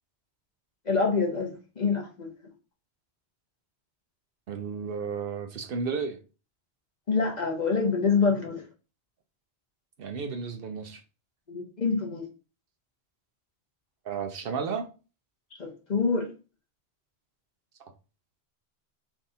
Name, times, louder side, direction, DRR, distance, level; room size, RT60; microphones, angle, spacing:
voice 1, 0.8-2.3 7.1-8.6 11.5-12.3 15.6-16.3, left 4 dB, 45° left, 1.1 m, -26 dB
voice 2, 4.5-6.2 10.0-11.0 14.0-14.9, right 5 dB, 65° right, 0.7 m, -33 dB
3.6 x 2.5 x 4.0 m
omnidirectional pair, 1.1 m